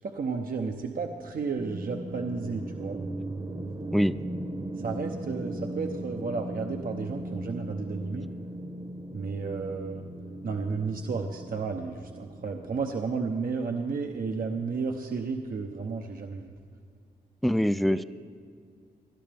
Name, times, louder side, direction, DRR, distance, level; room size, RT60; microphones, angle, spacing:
voice 1, 0.0-3.0 4.8-8.3 9.1-10.0 10.4-16.5 17.8-18.0, right 4 dB, 55° right, 3 dB, 0.8 m, -32 dB
sound 1, 1.6-13.7, right 1 dB, 30° right, 1.0 m, -38 dB
voice 2, 17.4-18.0, equal, ahead, 15 dB, 0.3 m, -24 dB
19.0 x 11.5 x 3.5 m, 2.2 s
cardioid pair, 55°, 17 cm